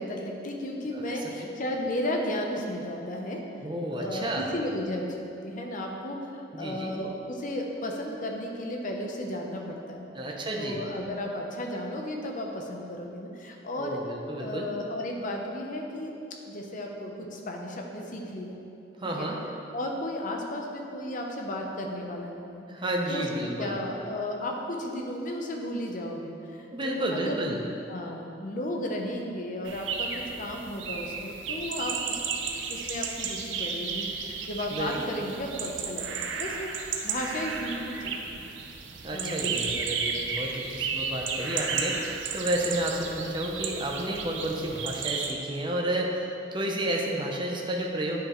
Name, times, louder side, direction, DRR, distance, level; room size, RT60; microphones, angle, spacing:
voice 1, 0.0-3.4 3.9-10.1 10.6-14.0 14.4-16.1 16.4-18.6 19.2-19.3 19.7-22.6 23.1-27.5 27.9-32.2 32.7-38.4 39.1-39.8, left 1 dB, 45° left, 1 dB, 0.7 m, -34 dB
voice 2, 0.9-1.5 3.6-4.5 6.5-6.9 10.2-10.8 13.8-14.7 19.0-19.4 22.7-23.8 26.7-27.6 34.7-35.0 39.0-48.2, right 1 dB, 25° right, -1 dB, 0.6 m, -31 dB
sound 1, 29.7-45.3, right 5 dB, 70° right, 0.5 m, -33 dB
9.9 x 5.0 x 3.0 m, 2.8 s
head